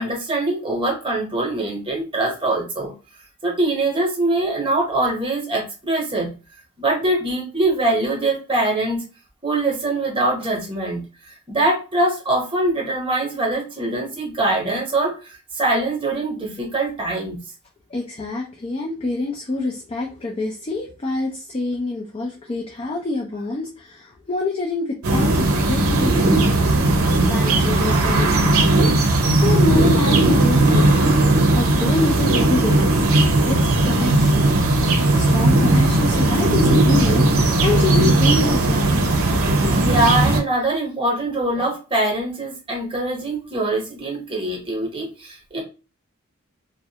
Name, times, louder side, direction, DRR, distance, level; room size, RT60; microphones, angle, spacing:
voice 1, 0.0-2.9 3.4-6.3 6.8-9.0 9.4-17.4 39.7-45.6, right 2 dB, 25° right, -1 dB, 0.9 m, -23 dB
voice 2, 17.9-26.6 27.3-30.9 31.2-33.0 33.4-39.0 39.2-39.8, left 3 dB, 25° left, -2 dB, 0.4 m, -27 dB
sound 1, 25.0-40.4, right 2 dB, 85° right, 0.6 m, -17 dB
2.3 x 2.1 x 2.7 m, 0.33 s
head